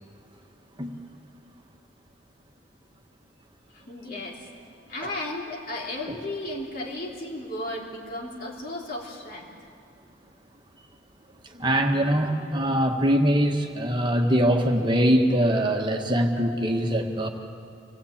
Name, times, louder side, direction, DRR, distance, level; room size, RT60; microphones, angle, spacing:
voice 1, 3.7-4.4 4.9-9.5, left 1 dB, 50° left, -3 dB, 3.5 m, -34 dB
voice 2, 11.4-17.3, equal, 25° right, 2 dB, 1.5 m, -23 dB
26.0 x 16.5 x 8.7 m, 2.5 s
head